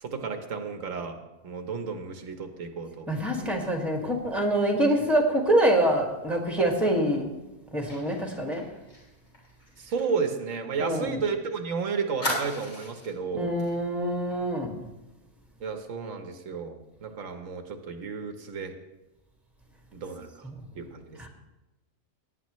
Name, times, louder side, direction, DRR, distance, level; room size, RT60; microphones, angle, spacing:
voice 1, 0.0-1.2 1.4-3.1 9.8-13.5 15.6-18.7 19.9-20.5 20.7-21.3, right 5 dB, 90° right, 7 dB, 1.4 m, -32 dB
voice 2, 3.1-7.4 7.7-8.6 10.8-11.2 13.3-14.7 20.4-20.5 21.2-21.3, right 1 dB, ahead, 1 dB, 1.7 m, -25 dB
Fire, 7.9-11.3 11.6-11.7 12.2-13.2 13.6-13.8 14.1-14.3, left 1 dB, 55° left, 3.8 m, -37 dB
17.5 x 9.4 x 3.1 m, 1.0 s
omnidirectional pair, 1.3 m